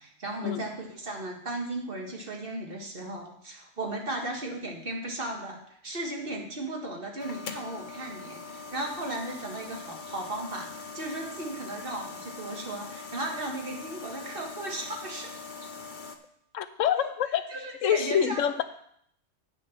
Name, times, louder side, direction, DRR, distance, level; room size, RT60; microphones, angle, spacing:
voice 1, 0.0-15.5 17.0-17.1 17.5-18.4, right 2 dB, 45° right, 1.8 m, -36 dB
sound 1, 7.2-16.2, left 4 dB, 45° left, 0.8 m, -42 dB
voice 2, 16.5-17.4 17.8-18.6, left 9 dB, 85° left, 1.0 m, -26 dB
8.4 x 6.7 x 5.7 m
omnidirectional pair, 1.3 m